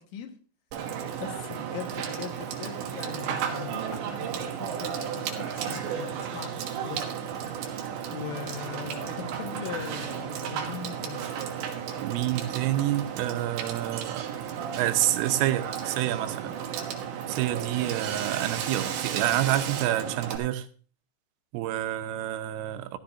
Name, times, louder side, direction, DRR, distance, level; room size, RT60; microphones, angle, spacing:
Water / Water tap faucet / Sink (filling or washing), 0.7-20.4, right 8 dB, 70° right, 3.6 m, -34 dB
voice 1, 1.2-7.0 8.1-11.2, left 9 dB, 75° left, 3.8 m, -40 dB
voice 2, 12.0-14.3 14.8-16.6 17.3-20.7 21.5-23.0, right 13 dB, 90° right, 3.4 m, -28 dB
14.5 x 13.5 x 2.6 m
omnidirectional pair, 5.8 m